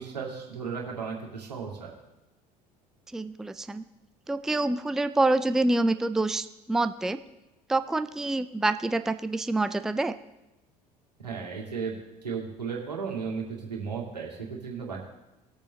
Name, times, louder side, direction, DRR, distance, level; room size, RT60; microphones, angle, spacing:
voice 1, 0.0-1.9 11.2-12.0 12.2-15.0, right 5 dB, 85° right, -2 dB, 2.2 m, -35 dB
voice 2, 3.1-3.8 4.3-7.2 7.7-10.1, right 2 dB, ahead, 11 dB, 0.4 m, -26 dB
19.5 x 7.0 x 3.2 m, 0.98 s
figure-of-eight pair, 65°, 20 cm